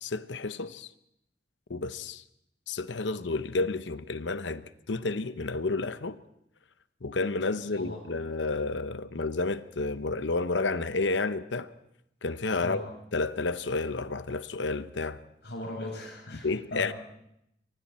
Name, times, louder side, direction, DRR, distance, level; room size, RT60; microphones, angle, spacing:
voice 1, 0.0-0.9 1.7-2.2 2.7-6.2 7.0-11.7 12.2-12.9 13.1-15.2 16.4-16.9, left 3 dB, 85° left, 0.9 m, -31 dB
voice 2, 7.7-8.0 12.6-12.9 15.4-16.9, left 1 dB, 70° left, 7.6 m, -38 dB
29.5 x 23.5 x 4.4 m
head